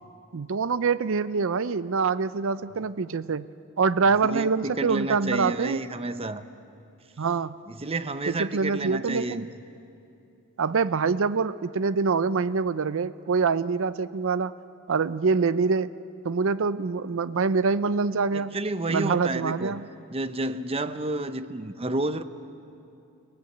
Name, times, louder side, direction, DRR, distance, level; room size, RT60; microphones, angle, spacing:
voice 1, 0.3-3.5 3.8-5.8 7.2-7.5 8.3-9.5 10.6-14.5 14.9-15.9 16.2-18.6 18.9-19.9, right 5 dB, 65° right, 15 dB, 0.6 m, -25 dB
voice 2, 4.2-6.4 7.7-9.5 18.5-19.8 20.1-22.2, right 2 dB, 30° right, 11 dB, 0.8 m, -30 dB
29.5 x 18.5 x 7.9 m, 2.7 s
head